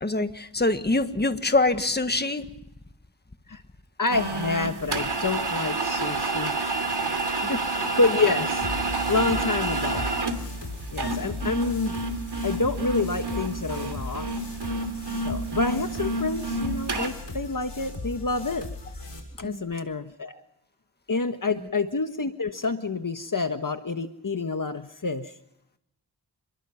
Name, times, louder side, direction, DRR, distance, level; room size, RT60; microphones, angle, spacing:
voice 1, 0.0-2.5 19.4-19.6, left 2 dB, 25° left, 9 dB, 1.6 m, -24 dB
voice 2, 4.0-6.8 7.5-10.1 10.9-11.9 12.4-14.3 15.2-18.7 19.4-20.4 21.1-25.3, left 3 dB, 50° left, 8 dB, 1.4 m, -28 dB
sound 1, 4.1-17.1, right 3 dB, 75° right, 2.9 m, -29 dB
sound 2, 8.6-19.2, left 3 dB, 80° left, 6.4 m, -37 dB
29.0 x 22.0 x 5.9 m, 0.84 s
wide cardioid pair, 60°, 41 cm